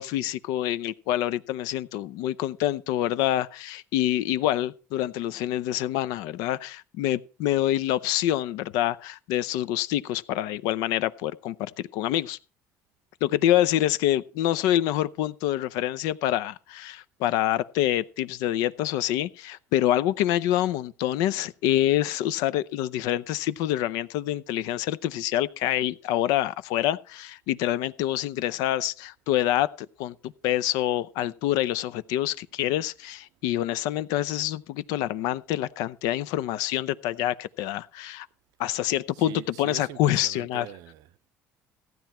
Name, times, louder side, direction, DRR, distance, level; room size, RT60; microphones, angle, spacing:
voice 1, 0.0-12.4 13.2-29.7 30.0-38.3 38.6-40.7, left 13 dB, 80° left, 0.6 m, -26 dB
voice 2, 39.1-41.3, right 15 dB, 75° right, 0.6 m, -42 dB
15.0 x 9.4 x 4.3 m
supercardioid pair, 100°, 6 cm